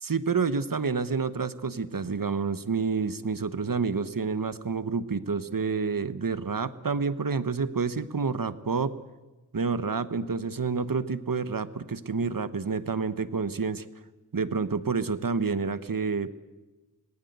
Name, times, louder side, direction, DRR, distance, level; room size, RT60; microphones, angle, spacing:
voice 1, 0.0-9.0 9.5-13.9 14.3-16.3, right 5 dB, 65° right, 13 dB, 1.2 m, -29 dB
27.0 x 19.0 x 8.1 m, 1.1 s
wide cardioid pair, 45°, 36 cm